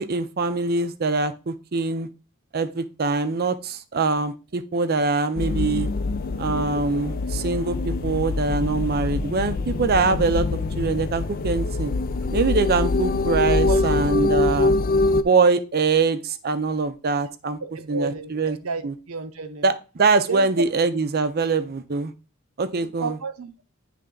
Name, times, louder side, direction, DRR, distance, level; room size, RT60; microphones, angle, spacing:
voice 1, 0.0-2.1 2.5-5.9 6.4-10.5 10.8-11.9 12.3-14.7 15.2-17.6 17.9-18.6 18.8-18.9 19.6-22.1 22.6-23.1, right 4 dB, 45° right, 0.5 m, -23 dB
sound 1, 5.4-15.2, left 3 dB, 45° left, 0.4 m, -24 dB
voice 2, 17.6-19.7 20.3-20.6 22.7-23.5, right 4 dB, 90° right, 0.8 m, -32 dB
9.8 x 3.3 x 3.8 m
head